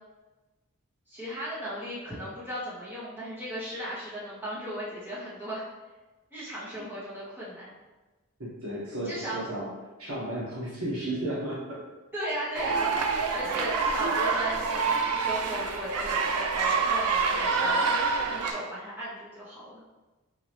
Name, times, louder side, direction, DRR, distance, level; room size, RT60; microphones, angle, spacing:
voice 1, 1.1-5.7 6.3-7.7 9.0-9.4 12.1-12.9 13.3-17.9 18.3-19.8, equal, 10° right, -10 dB, 1.2 m, -36 dB
voice 2, 8.4-9.6 10.0-11.8, right 1 dB, 70° right, -7 dB, 1.2 m, -33 dB
sound 1, 12.5-18.5, right 4 dB, 85° right, 0.5 m, -27 dB
4.0 x 2.8 x 3.1 m, 1.2 s
head